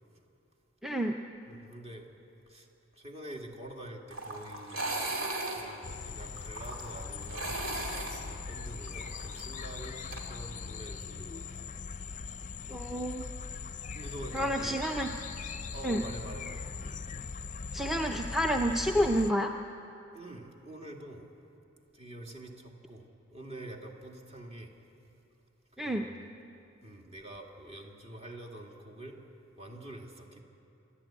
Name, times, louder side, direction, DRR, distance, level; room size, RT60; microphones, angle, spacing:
voice 1, 0.8-1.2 12.7-13.3 14.3-15.1 15.8-16.0 17.7-19.5 25.8-26.1, equal, ahead, 3 dB, 0.6 m, -29 dB
voice 2, 1.5-2.1 2.5-2.7 2.9-5.0 5.5-7.6 8.3-10.0 10.3-11.6 13.9-14.8 15.7-16.7 20.1-21.2 21.9-23.0 23.3-24.7 25.7-26.3 26.8-29.2 29.6-30.4, right 1 dB, 30° right, 1 dB, 2.2 m, -46 dB
sound 1, 4.1-10.2, right 2 dB, 75° right, 2.9 m, -38 dB
sound 2, 5.8-19.3, left 4 dB, 40° left, 0.6 m, -40 dB
28.0 x 11.5 x 8.8 m, 2.7 s
head